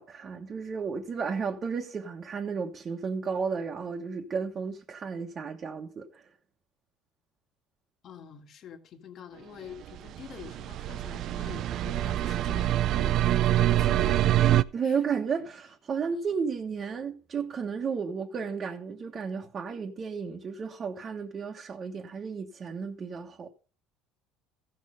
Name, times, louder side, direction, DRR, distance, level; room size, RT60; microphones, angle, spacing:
voice 1, 0.0-6.3 14.7-23.5, right 5 dB, 35° right, 1.4 m, -33 dB
voice 2, 8.0-13.2 13.4-14.5 14.8-15.0, left 8 dB, 50° left, 1.7 m, -46 dB
sound 1, 9.9-14.6, right 13 dB, 55° right, 0.5 m, -25 dB
15.0 x 6.6 x 5.3 m
cardioid pair, 115°, 0 cm